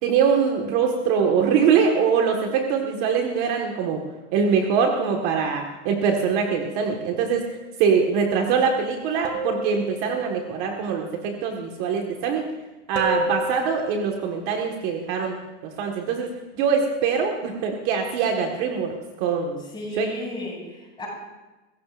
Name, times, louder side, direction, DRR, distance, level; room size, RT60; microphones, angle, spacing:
voice 1, 0.0-4.0 4.3-7.5 7.8-12.4 12.9-15.4 15.6-19.6 20.0-20.1, right 6 dB, 40° right, 2 dB, 1.6 m, -23 dB
sound 1, 7.0-7.6 9.2-10.4 13.0-14.2, right 2 dB, 75° right, 2.9 m, -31 dB
voice 2, 19.7-21.1, left 2 dB, 10° left, -3 dB, 6.5 m, -33 dB
26.0 x 15.5 x 2.5 m, 1.1 s
supercardioid pair, 150°, 36 cm